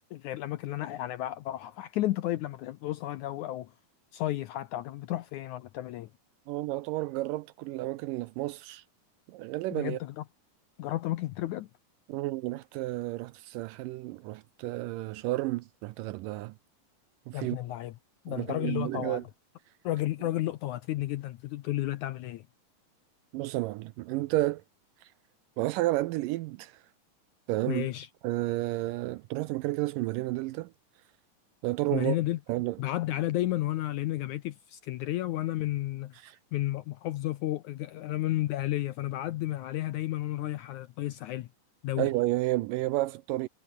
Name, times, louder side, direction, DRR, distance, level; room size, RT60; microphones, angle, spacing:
voice 1, 0.1-3.7 4.1-6.1 9.7-10.2 10.8-11.7 17.3-17.9 18.3-19.2 19.8-22.5 27.7-28.1 31.9-32.4 32.8-36.2 36.5-41.5 41.8-42.1, left 15 dB, 75° left, 1.8 m, -32 dB
voice 2, 6.5-8.8 9.3-10.0 12.1-16.5 17.3-17.6 18.3-19.2 23.3-24.6 25.0-25.1 25.6-26.8 27.5-27.9 28.2-30.7 31.6-32.2 32.5-32.8 36.2-36.4 42.0-43.5, right 18 dB, 80° right, 2.1 m, -31 dB
omnidirectional pair, 4.2 m